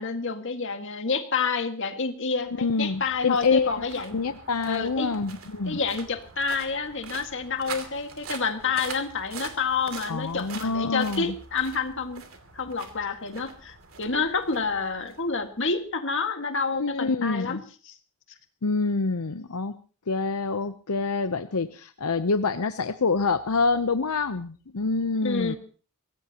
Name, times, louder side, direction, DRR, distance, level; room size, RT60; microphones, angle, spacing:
voice 1, 0.0-4.2 4.7-5.1 5.7-12.2 12.5-17.6 17.9-18.0 25.2-25.6, left 4 dB, 55° left, 6 dB, 1.9 m, -28 dB
sound 1, 2.4-15.8, right 5 dB, 65° right, 2.7 m, -44 dB
voice 2, 2.5-3.8 4.1-5.8 10.1-11.3 16.7-17.6 18.6-19.7 20.1-25.6, left 4 dB, 80° left, 9 dB, 0.8 m, -26 dB
23.5 x 18.0 x 2.9 m, 0.39 s
head